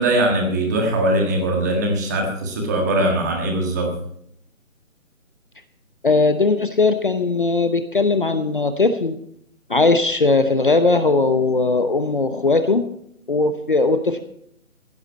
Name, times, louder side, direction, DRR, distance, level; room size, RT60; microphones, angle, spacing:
voice 1, 0.0-3.9, right 1 dB, 10° right, 1 dB, 1.6 m, -21 dB
voice 2, 6.0-9.2 9.7-12.9 13.3-14.2, left 3 dB, 40° left, 10 dB, 0.8 m, -19 dB
16.0 x 12.0 x 4.3 m, 0.70 s
figure-of-eight pair, 160°, 42 cm